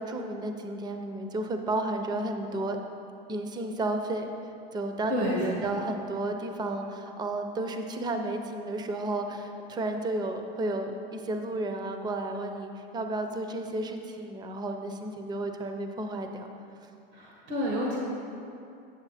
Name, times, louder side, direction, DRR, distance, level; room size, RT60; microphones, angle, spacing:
voice 1, 0.0-2.8 3.3-4.3 4.7-16.5, right 2 dB, 15° right, 5 dB, 0.5 m, -32 dB
voice 2, 5.1-5.7 17.1-18.0, equal, 90° right, -3 dB, 1.8 m, -29 dB
9.0 x 6.7 x 4.1 m, 2.6 s
supercardioid pair, 130°, 30 cm